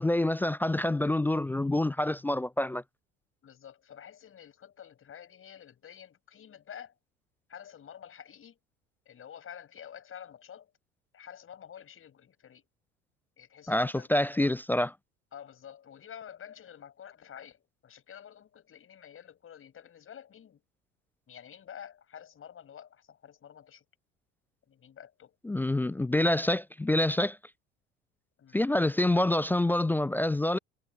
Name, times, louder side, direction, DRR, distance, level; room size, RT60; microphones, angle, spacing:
voice 1, 0.0-2.8 13.7-14.9 25.4-27.4 28.5-30.6, left 1 dB, 5° left, 0.4 m, -27 dB
voice 2, 3.4-6.9 7.5-8.6 9.0-10.7 11.1-12.7 13.4-14.1 15.3-20.6 21.3-23.8 24.7-25.4 28.4-28.6, left 9 dB, 35° left, 6.7 m, -49 dB
figure-of-eight pair, 65°, 38 cm